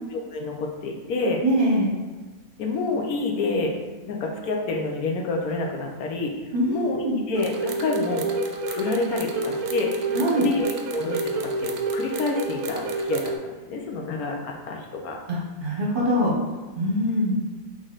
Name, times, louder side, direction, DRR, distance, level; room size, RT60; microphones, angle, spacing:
voice 1, 0.1-1.4 2.6-3.7 4.1-6.3 6.7-8.3 8.7-10.1 10.4-11.3 11.6-15.2, left 3 dB, 75° left, 1 dB, 1.1 m, -28 dB
voice 2, 1.4-1.9 6.5-7.2 10.1-10.5 15.3-16.3 16.7-17.3, equal, 45° right, -4 dB, 0.9 m, -23 dB
sound 1, 7.3-13.4, right 2 dB, 70° right, 0.9 m, -29 dB
3.9 x 3.2 x 3.8 m, 1.3 s
omnidirectional pair, 1.6 m